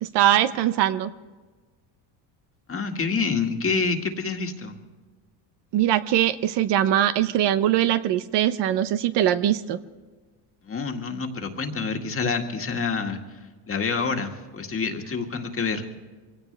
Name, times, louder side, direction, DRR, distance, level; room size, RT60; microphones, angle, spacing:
voice 1, 0.0-1.1 5.7-9.8, right 11 dB, 65° right, 12 dB, 0.9 m, -22 dB
voice 2, 2.7-4.8 10.6-13.2 13.7-15.8, left 4 dB, 30° left, 4 dB, 1.9 m, -27 dB
23.5 x 17.0 x 3.4 m, 1.3 s
cardioid pair, 110°, 45 cm